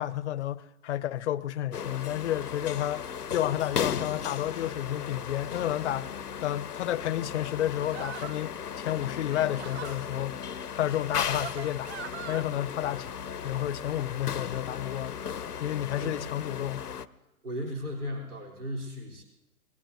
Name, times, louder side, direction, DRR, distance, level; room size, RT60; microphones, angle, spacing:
voice 1, 0.0-3.0 3.3-6.1 6.4-10.4 10.7-11.9 12.3-13.1 13.4-15.2 15.6-16.8, left 12 dB, 50° left, 0.6 m, -31 dB
sound 1, 1.7-17.1, left 7 dB, 90° left, 0.7 m, -36 dB
sound 2, 7.9-8.5 9.2-10.0 10.9-12.4, right 9 dB, 50° right, 0.4 m, -42 dB
voice 2, 15.9-16.7 17.4-19.2, equal, 75° right, 3.6 m, -37 dB
24.0 x 20.5 x 2.7 m
figure-of-eight pair, 120°, 45 cm